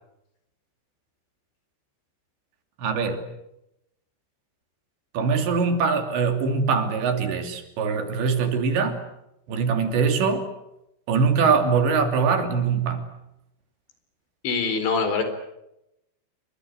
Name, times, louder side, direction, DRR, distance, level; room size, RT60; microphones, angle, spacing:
voice 1, 2.8-3.2 5.1-9.0 9.5-10.5 11.1-13.0, right 5 dB, 75° right, 6 dB, 5.1 m, -22 dB
voice 2, 14.4-15.2, left 5 dB, 75° left, 9 dB, 6.4 m, -24 dB
29.5 x 24.0 x 8.2 m, 0.86 s
omnidirectional pair, 5.2 m